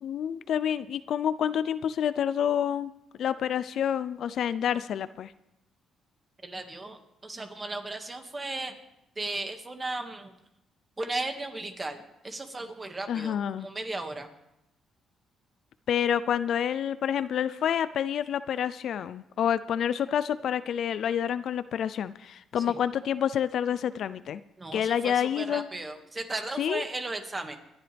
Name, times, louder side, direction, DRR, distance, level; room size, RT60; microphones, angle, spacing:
voice 1, 0.0-2.9 3.2-5.3 13.1-13.7 15.9-24.4 24.7-25.7 26.6-26.8, left 9 dB, 65° left, 15 dB, 0.4 m, -28 dB
voice 2, 6.4-8.7 9.2-10.3 11.0-14.3 22.6-22.8 24.6-27.6, right 2 dB, 25° right, 5 dB, 1.9 m, -36 dB
27.0 x 11.0 x 3.4 m, 0.86 s
cardioid pair, 90°, 0 cm